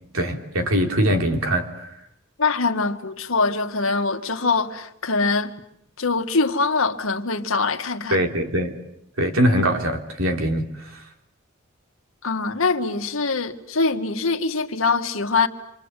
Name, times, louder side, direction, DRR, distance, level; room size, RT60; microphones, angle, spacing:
voice 1, 0.1-1.9 8.1-8.8 9.2-11.0, equal, 85° right, 3.4 m, -22 dB
voice 2, 2.4-5.5 6.0-8.2 12.2-15.5, left 4 dB, 80° left, 1.8 m, -23 dB
28.0 x 25.0 x 8.3 m
head